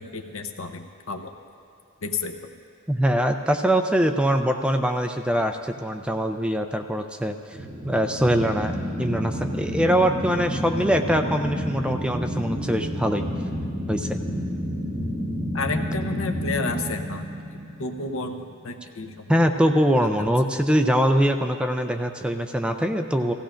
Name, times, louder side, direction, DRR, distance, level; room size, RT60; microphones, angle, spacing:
voice 1, 0.0-1.3 2.0-2.5 15.5-17.3 17.8-19.4 20.2-20.3, left 3 dB, 65° left, 6 dB, 0.8 m, -31 dB
voice 2, 2.9-7.4 7.8-8.7 9.0-13.2 13.9-14.2 19.3-23.3, equal, 5° right, 5 dB, 0.4 m, -23 dB
sound 1, 7.5-18.4, equal, 20° right, 2.4 m, -30 dB
16.5 x 15.5 x 2.5 m, 2.7 s
head